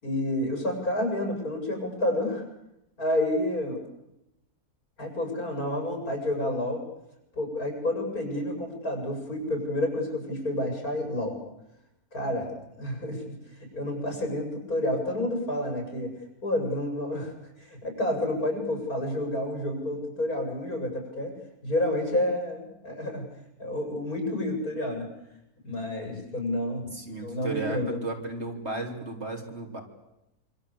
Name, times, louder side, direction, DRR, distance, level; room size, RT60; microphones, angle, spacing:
voice 1, 0.0-2.4 3.0-3.9 5.0-6.8 7.4-11.4 12.1-12.5 12.8-13.2 13.7-16.1 16.4-17.3 17.6-21.3 21.6-23.3 23.6-25.0 25.6-28.0, left 1 dB, 70° left, 2 dB, 7.6 m, -29 dB
voice 2, 26.9-29.8, right 2 dB, 45° right, 2 dB, 4.1 m, -34 dB
26.0 x 25.5 x 8.6 m, 0.88 s
omnidirectional pair, 1.6 m